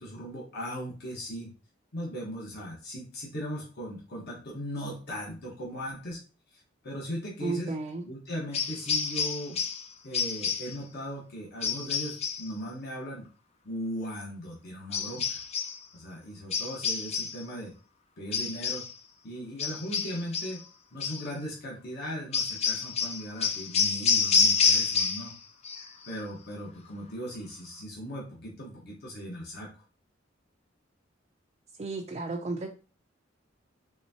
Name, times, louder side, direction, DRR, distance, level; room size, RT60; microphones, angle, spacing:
voice 1, 0.0-1.5 1.9-6.2 6.5-7.7 8.0-9.6 10.0-13.2 13.6-15.4 15.9-17.7 18.2-18.8 19.2-20.6 20.9-25.3 26.0-29.7, equal, 55° left, -4 dB, 1.3 m, -38 dB
voice 2, 7.4-8.0 31.8-32.7, right 3 dB, 35° right, 1 dB, 0.4 m, -33 dB
sound 1, 8.5-9.9 10.1-10.8 11.6-12.5 14.9-15.8 16.5-17.4 18.3-18.9 19.6-20.6 21.0-21.3 22.3-25.4 25.6-26.1, left 5 dB, 35° left, 0.4 m, -28 dB
4.3 x 3.5 x 2.8 m, 0.38 s
head